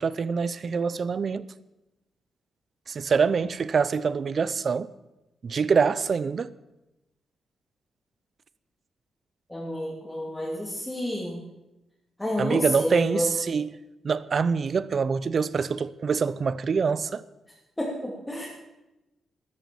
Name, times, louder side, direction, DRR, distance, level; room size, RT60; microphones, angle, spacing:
voice 1, 0.0-1.4 2.9-4.9 5.4-6.5 12.4-13.7 14.0-17.2, right 5 dB, 40° right, 0.6 m, -25 dB
voice 2, 9.5-11.4 12.2-13.3 17.8-18.5, left 1 dB, 10° left, 2.8 m, -30 dB
13.0 x 13.0 x 7.1 m
wide cardioid pair, 140°, 0 cm